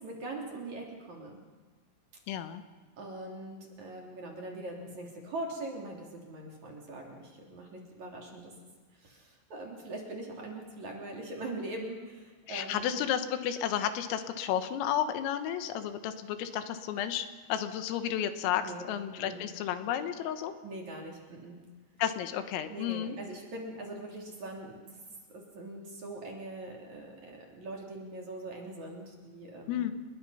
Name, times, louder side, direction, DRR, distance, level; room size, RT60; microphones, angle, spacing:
voice 1, 0.0-1.4 3.0-8.5 8.9-13.0 18.6-18.9 19.2-19.4 20.6-21.6 22.7-24.8 25.3-29.9, right 2 dB, 40° right, -1 dB, 3.9 m, -42 dB
voice 2, 2.3-2.6 12.5-20.5 22.0-23.2 29.7-29.9, left 10 dB, 85° left, 8 dB, 3.9 m, -32 dB
29.0 x 21.5 x 5.7 m, 1.4 s
omnidirectional pair, 5.9 m